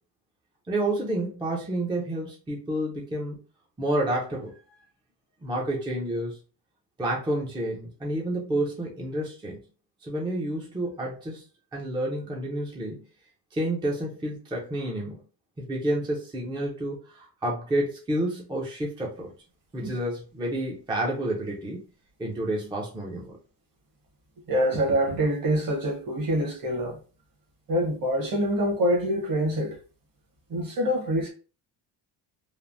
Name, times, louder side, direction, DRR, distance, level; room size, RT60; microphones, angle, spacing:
voice 1, 0.7-3.4 3.8-4.5 5.4-6.4 7.0-9.6 10.0-11.4 11.7-13.0 13.5-15.2 15.6-19.3 19.7-21.8 22.2-23.4, right 1 dB, 10° right, 0.5 m, -29 dB
voice 2, 24.5-27.0 27.7-29.8 30.5-31.3, equal, 45° right, 1.0 m, -25 dB
3.3 x 2.0 x 2.5 m
cardioid pair, 135°, 47 cm